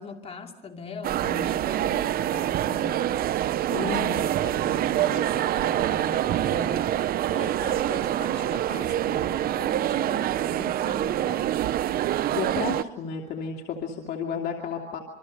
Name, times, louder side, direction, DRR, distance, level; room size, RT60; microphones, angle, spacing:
voice 1, 0.0-3.1 3.8-6.9 7.3-11.6, left 4 dB, 35° left, 3 dB, 2.9 m, -41 dB
sound 1, 1.0-12.8, right 12 dB, 60° right, 0.7 m, -26 dB
Wind instrument woodwind instrument, 2.2-10.6, left 1 dB, 20° left, 4.0 m, -46 dB
voice 2, 3.7-4.3 12.3-15.0, left 6 dB, 70° left, 1 dB, 2.7 m, -32 dB
27.0 x 24.5 x 6.6 m, 1.0 s
cardioid pair, 110°, 17 cm